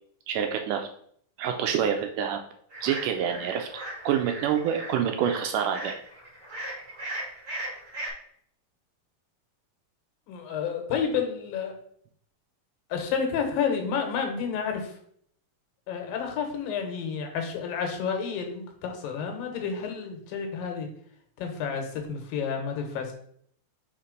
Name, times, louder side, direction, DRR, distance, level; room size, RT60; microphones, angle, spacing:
voice 1, 0.3-0.9 1.4-2.4 2.8-3.7 4.0-6.0, right 8 dB, 80° right, 5 dB, 1.9 m, -27 dB
sound 1, 2.7-8.1, right 1 dB, 35° right, 1.4 m, -38 dB
voice 2, 10.3-11.7 12.9-15.0 15.9-20.9 21.4-23.1, left 6 dB, 80° left, 4 dB, 2.8 m, -30 dB
5.1 x 4.3 x 5.1 m, 0.65 s
omnidirectional pair, 4.0 m